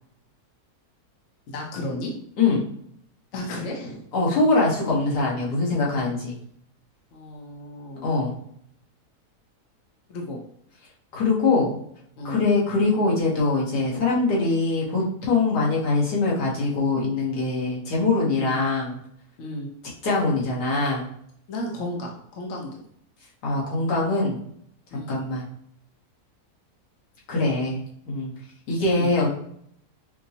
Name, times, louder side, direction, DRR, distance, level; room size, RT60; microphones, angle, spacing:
voice 1, 1.5-2.1 3.3-4.1 7.1-8.1 10.1-10.4 12.2-12.4 18.3-18.6 19.4-19.7 21.5-22.8 24.9-25.2 28.9-29.1, left 1 dB, 60° left, 0 dB, 0.9 m, -33 dB
voice 2, 4.1-6.3 8.0-8.3 11.1-11.7 12.2-19.0 20.0-21.1 23.4-24.4 24.9-25.4 27.3-27.8 28.1-28.3 28.7-29.3, left 3 dB, 80° left, -4 dB, 1.6 m, -23 dB
5.0 x 2.0 x 2.7 m, 0.67 s
omnidirectional pair, 1.7 m